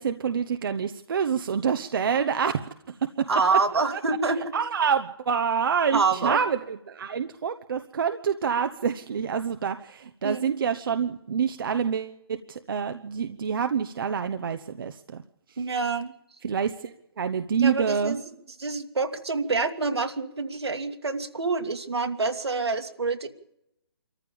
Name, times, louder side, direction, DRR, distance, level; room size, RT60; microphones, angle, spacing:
voice 1, 0.0-2.5 3.2-3.3 3.9-4.0 4.5-15.2 16.4-18.2, right 7 dB, 55° right, 8 dB, 1.1 m, -27 dB
voice 2, 3.3-4.5 5.9-6.4 10.2-10.6 15.6-16.2 17.6-18.2 18.6-23.3, right 4 dB, 80° right, 5 dB, 2.4 m, -27 dB
26.0 x 14.5 x 7.1 m, 0.82 s
hypercardioid pair, 150°, 13 cm